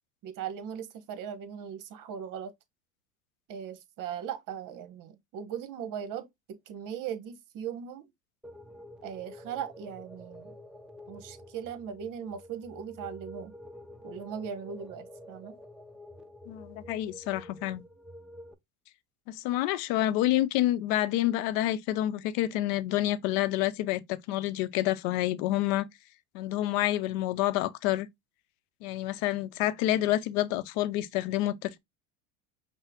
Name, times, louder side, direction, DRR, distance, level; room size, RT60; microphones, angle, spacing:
voice 1, 0.2-2.5 3.5-8.1 9.0-10.5 11.1-13.5 14.0-15.5, right 8 dB, 50° right, 1.0 m, -39 dB
sound 1, 8.4-18.5, left 1 dB, ahead, 0.5 m, -48 dB
voice 2, 16.5-17.8 19.3-25.9 26.3-28.1 28.8-31.8, left 14 dB, 60° left, 0.7 m, -28 dB
5.5 x 2.1 x 3.5 m
hypercardioid pair, 90°, 42 cm